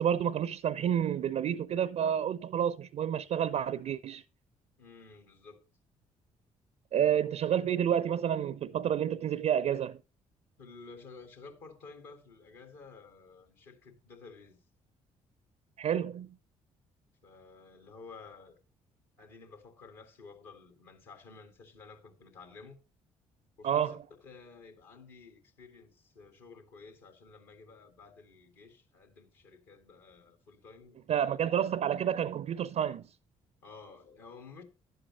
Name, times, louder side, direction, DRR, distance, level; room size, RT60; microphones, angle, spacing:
voice 1, 0.0-4.2 6.9-10.0 15.8-16.4 23.6-23.9 31.1-33.0, right 9 dB, 45° right, 0.5 m, -29 dB
voice 2, 4.8-5.6 10.6-14.6 17.2-18.6 19.2-22.8 23.6-31.5 33.6-34.6, left 4 dB, 65° left, 2.3 m, -52 dB
11.0 x 7.9 x 4.0 m
figure-of-eight pair, 45°, 16 cm